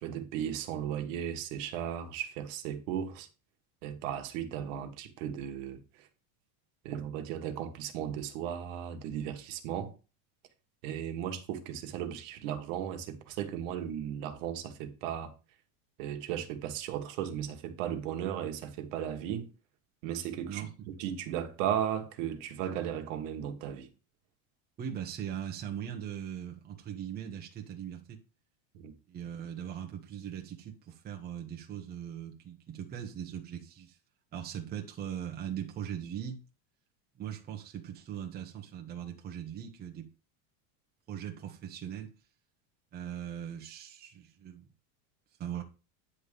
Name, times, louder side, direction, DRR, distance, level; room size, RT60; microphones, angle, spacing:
voice 1, 0.0-3.3 3.8-6.1 6.8-9.9 10.8-15.3 16.0-19.5 20.0-23.9 28.7-28.9, right 9 dB, 60° right, 1.5 m, -36 dB
voice 2, 24.8-28.2 29.1-34.0 34.3-36.4 37.2-40.1 41.1-42.1 42.9-44.6 45.4-45.6, right 9 dB, 20° right, 1.1 m, -40 dB
9.7 x 3.7 x 6.7 m
cardioid pair, 165°, 42 cm